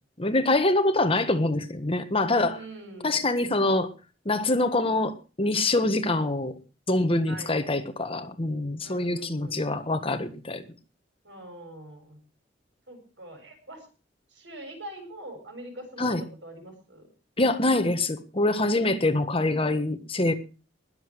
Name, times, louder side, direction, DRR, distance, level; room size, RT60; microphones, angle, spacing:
voice 1, 0.2-2.6 3.0-3.9 4.2-6.5 6.9-10.6 16.0-16.2 17.4-20.3, left 2 dB, 30° left, 9 dB, 1.5 m, -25 dB
voice 2, 2.5-3.2 7.3-7.5 8.8-9.6 11.2-12.2 12.9-13.9 14.3-17.1 19.4-19.7, right 1 dB, 75° right, 4 dB, 7.5 m, -43 dB
20.5 x 8.1 x 6.3 m, 0.35 s
head